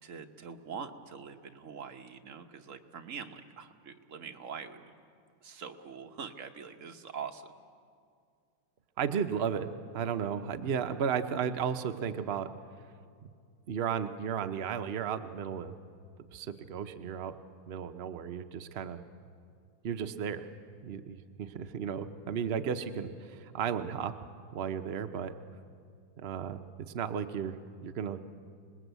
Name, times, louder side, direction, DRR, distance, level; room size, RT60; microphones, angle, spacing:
voice 1, 0.0-4.9 5.4-7.5, right 6 dB, 50° right, 5 dB, 1.2 m, -44 dB
voice 2, 9.0-12.5 13.2-13.3 13.7-15.8 16.3-17.4 17.7-19.0 19.8-20.5 20.8-24.1 24.5-25.3 26.2-26.6 26.9-28.2, right 7 dB, 75° right, 8 dB, 0.5 m, -34 dB
26.5 x 20.0 x 8.1 m, 2.2 s
omnidirectional pair, 2.1 m